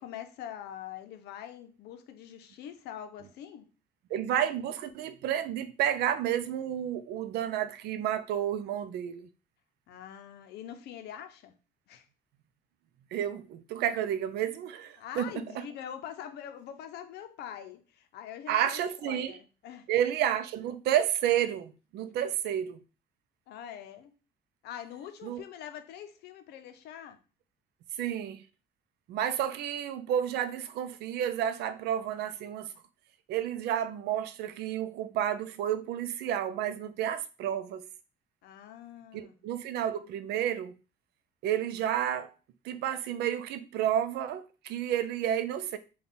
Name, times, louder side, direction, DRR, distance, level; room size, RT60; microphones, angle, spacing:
voice 1, 0.0-3.7 9.9-11.6 11.9-12.1 15.0-19.9 23.5-24.1 24.6-27.2 38.4-39.4, left 10 dB, 75° left, 0.6 m, -44 dB
voice 2, 4.1-9.3 13.1-15.3 18.5-19.3 19.9-22.8 25.2-25.4 28.0-28.4 29.1-32.7 33.3-37.8 39.1-40.8 41.4-42.3 42.6-45.8, right 10 dB, 75° right, 0.5 m, -31 dB
3.5 x 2.3 x 3.9 m
cardioid pair, 110°, 17 cm